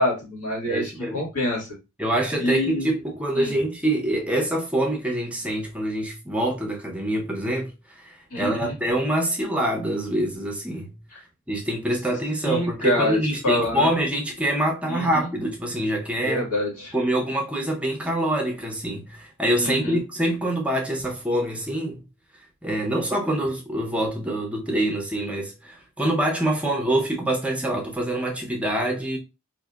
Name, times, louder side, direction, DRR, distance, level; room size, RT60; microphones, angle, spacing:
voice 1, 0.0-1.7 2.4-2.9 3.3-3.5 8.3-8.7 11.1-11.2 12.4-13.9 14.9-15.3 16.2-16.9 19.6-20.0, left 1 dB, 90° left, 1.7 m, -26 dB
voice 2, 0.7-1.2 2.0-10.9 11.5-16.4 16.9-22.0 22.6-29.2, right 1 dB, 5° right, 0.5 m, -25 dB
4.7 x 2.6 x 2.3 m
head